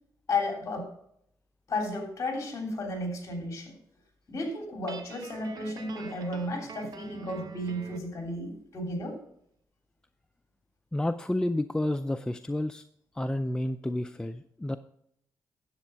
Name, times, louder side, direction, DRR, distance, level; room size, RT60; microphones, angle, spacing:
voice 1, 0.3-0.9 1.7-3.7 4.3-9.2, left 2 dB, 45° left, 2 dB, 3.3 m, -33 dB
Guitar, 4.9-8.1, right 5 dB, 65° right, 1.0 m, -46 dB
voice 2, 10.9-12.8 13.1-14.8, left 1 dB, 10° left, 9 dB, 0.4 m, -30 dB
10.0 x 7.8 x 4.5 m, 0.71 s
cardioid pair, 100°, 7 cm